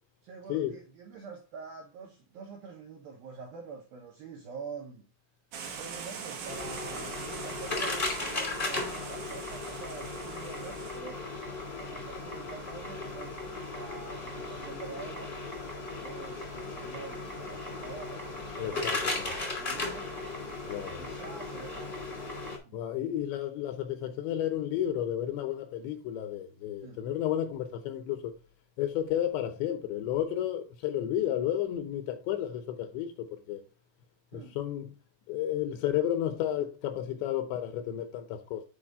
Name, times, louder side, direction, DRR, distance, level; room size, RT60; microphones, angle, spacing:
voice 1, 0.2-5.1 5.7-11.2 11.7-15.4 15.8-20.1 21.0-22.1 22.6-22.8 26.8-27.1 34.3-34.6, right 5 dB, 85° right, 2.1 m, -46 dB
sound 1, 5.5-11.0, right 6 dB, 65° right, 2.0 m, -42 dB
sound 2, 6.5-22.6, left 2 dB, 25° left, 1.0 m, -36 dB
voice 2, 18.6-19.4 20.7-21.0 22.7-28.3 28.8-33.1 33.5-33.6 34.3-34.9 35.3-38.7, left 11 dB, 75° left, 2.8 m, -32 dB
8.8 x 5.0 x 3.6 m
omnidirectional pair, 5.6 m